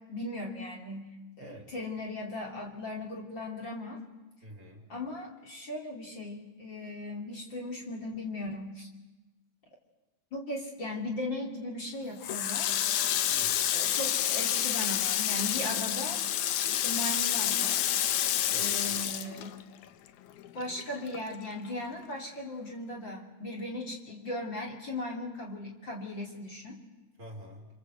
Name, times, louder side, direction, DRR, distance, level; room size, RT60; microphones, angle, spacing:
voice 1, 0.1-1.1 1.4-4.0 4.9-8.9 10.3-12.8 13.7-16.2 16.7-17.9 18.5-19.5 20.5-26.8, left 1 dB, 40° left, 0 dB, 3.4 m, -38 dB
voice 2, 1.4-1.7 4.4-4.9 13.3-13.6 18.4-19.0 27.2-27.7, equal, 30° right, 1 dB, 3.9 m, -48 dB
Water tap faucet, 12.2-20.1 20.4-21.7, left 11 dB, 85° left, 2.5 m, -29 dB
29.0 x 25.0 x 8.0 m, 1.1 s
omnidirectional pair, 3.4 m